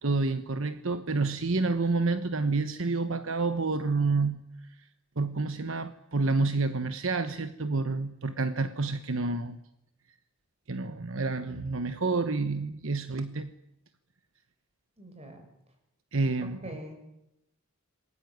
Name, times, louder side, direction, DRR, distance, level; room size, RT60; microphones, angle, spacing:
voice 1, 0.0-4.4 5.2-9.6 10.7-13.5 16.1-16.6, right 3 dB, 60° right, 10 dB, 1.1 m, -29 dB
voice 2, 15.0-15.5 16.4-17.1, equal, 30° right, 5 dB, 6.4 m, -44 dB
27.0 x 21.5 x 9.4 m, 0.84 s
head